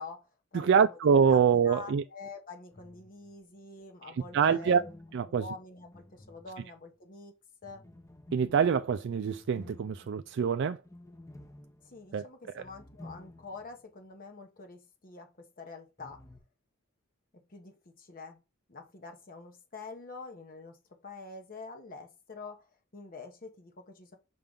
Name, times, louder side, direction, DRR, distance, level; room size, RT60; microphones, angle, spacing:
voice 1, 0.0-1.0 1.3-4.9 5.3-7.3 7.6-7.8 11.9-16.2 17.5-18.4 18.7-22.6 22.9-24.2, left 3 dB, 45° left, 1.1 m, -46 dB
voice 2, 0.5-2.0 4.3-4.8 5.1-5.5 8.3-10.8 12.1-12.3 12.5-12.6, right 6 dB, 60° right, 0.4 m, -25 dB
sound 1, 2.7-3.4 4.2-7.0 7.6-13.8 14.1-14.2 16.0-16.4, left 1 dB, 15° left, 0.8 m, -53 dB
5.6 x 3.7 x 5.2 m
head